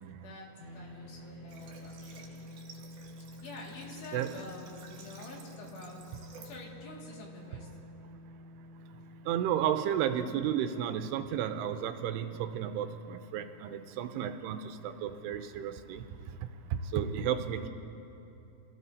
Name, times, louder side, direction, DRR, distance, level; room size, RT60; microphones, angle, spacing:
voice 1, 0.2-2.5 3.4-7.7, left 2 dB, 80° left, -3 dB, 4.3 m, -48 dB
sound 1, 0.6-15.0, left 1 dB, 50° left, 2.8 m, -51 dB
Water / Water tap faucet, 1.5-6.6, right 5 dB, 65° right, 3.5 m, -54 dB
voice 2, 9.3-16.0 16.9-17.7, right 9 dB, 85° right, 8 dB, 2.7 m, -32 dB
28.5 x 17.5 x 2.8 m, 2.9 s
omnidirectional pair, 4.8 m